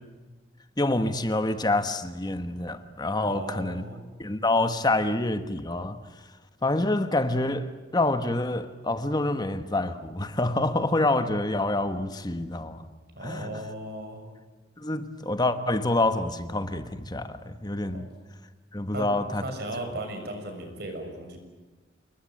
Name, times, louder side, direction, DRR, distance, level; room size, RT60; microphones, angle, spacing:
voice 1, 0.8-3.8 4.2-6.0 6.6-12.8 13.2-13.5 14.8-18.1 18.7-19.4, left 2 dB, 20° left, 1.3 m, -27 dB
voice 2, 3.2-4.0 13.1-14.2 17.9-18.1 18.9-21.4, right 1 dB, 55° right, 6.6 m, -36 dB
28.5 x 20.5 x 9.0 m
head